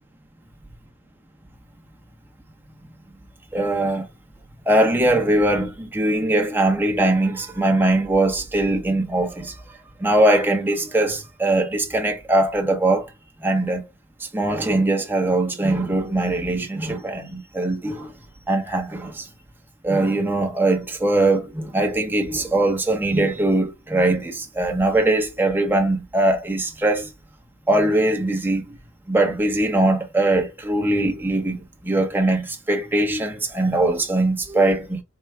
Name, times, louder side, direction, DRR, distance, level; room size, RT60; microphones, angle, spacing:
voice 1, 3.5-4.1 4.7-13.1 13.4-13.9 14.2-18.1 18.5-19.3 19.8-27.1 27.7-28.8 29.1-35.0, right 2 dB, 10° right, 0.7 m, -21 dB
4.5 x 2.2 x 3.2 m
head